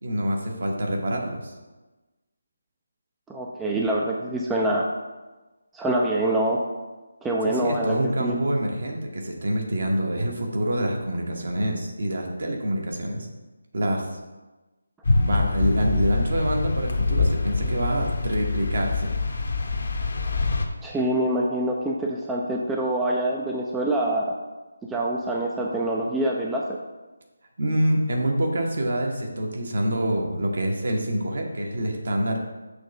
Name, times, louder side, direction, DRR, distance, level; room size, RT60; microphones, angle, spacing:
voice 1, 0.0-1.5 7.4-13.3 13.7-14.0 15.2-19.1 27.6-32.4, right 1 dB, 55° right, 1 dB, 1.2 m, -26 dB
voice 2, 3.3-4.9 5.7-6.6 7.2-8.4 20.8-24.3 24.9-26.6, right 1 dB, 5° right, -2 dB, 0.4 m, -25 dB
sound 1, 15.0-20.7, left 3 dB, 55° left, 0.8 m, -25 dB
6.4 x 3.2 x 5.4 m, 1.2 s
figure-of-eight pair, 155°, 0 cm